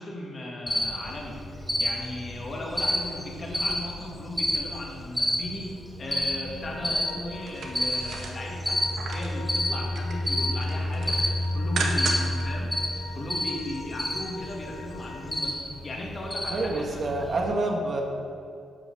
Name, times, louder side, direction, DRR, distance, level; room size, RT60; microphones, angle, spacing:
voice 1, 0.0-1.4 1.8-5.7 6.0-11.1 11.5-12.7 13.1-17.1, left 1 dB, 35° left, -2 dB, 2.2 m, -36 dB
Cricket, 0.7-17.4, left 1 dB, 5° left, 1.4 m, -30 dB
sound 1, 6.6-15.5, left 4 dB, 75° left, 1.2 m, -45 dB
sound 2, 7.3-9.4 9.8-10.3 10.6-12.4 12.8-12.9, right 3 dB, 75° right, 1.4 m, -35 dB
voice 2, 16.5-18.0, right 2 dB, 40° right, 1 dB, 1.5 m, -27 dB
11.0 x 6.2 x 6.8 m, 2.5 s
wide cardioid pair, 155°, 0 cm